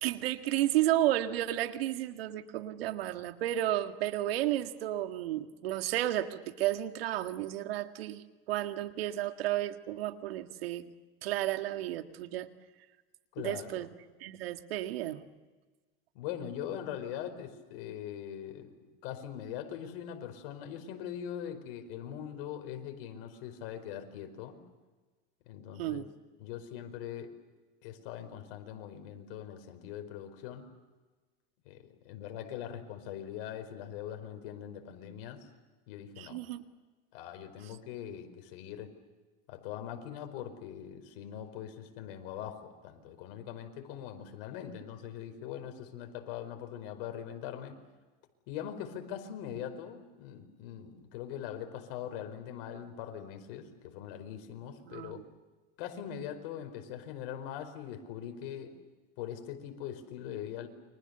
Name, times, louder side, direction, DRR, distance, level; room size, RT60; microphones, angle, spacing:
voice 1, 0.0-10.9 11.2-12.5 13.4-13.9 14.2-15.2 25.8-26.1 36.2-36.6 54.9-55.2, right 13 dB, 85° right, 7 dB, 1.9 m, -32 dB
voice 2, 13.3-13.8 16.1-18.7 19.0-24.6 25.5-26.0 26.4-27.3 27.8-30.6 31.6-35.5 35.9-36.4 37.1-38.9 39.5-47.8 48.5-55.2 55.8-58.7 59.2-60.7, left 9 dB, 70° left, 7 dB, 4.8 m, -42 dB
29.5 x 25.0 x 6.9 m, 1.3 s
supercardioid pair, 110°, 29 cm